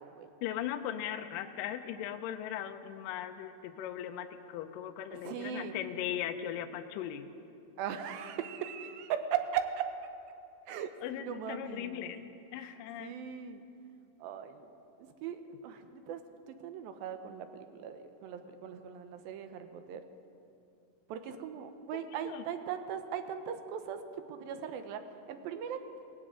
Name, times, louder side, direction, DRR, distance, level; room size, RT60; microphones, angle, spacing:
voice 1, 0.4-7.3 11.0-13.2 21.9-22.4, left 10 dB, 80° left, 7 dB, 2.2 m, -39 dB
voice 2, 5.1-5.8 7.8-9.9 10.7-12.0 13.0-13.6 14.2-16.2 16.5-20.0 21.1-24.0 24.3-25.8, right 8 dB, 90° right, 8 dB, 2.6 m, -39 dB
18.5 x 16.5 x 3.7 m, 2.7 s
omnidirectional pair, 4.1 m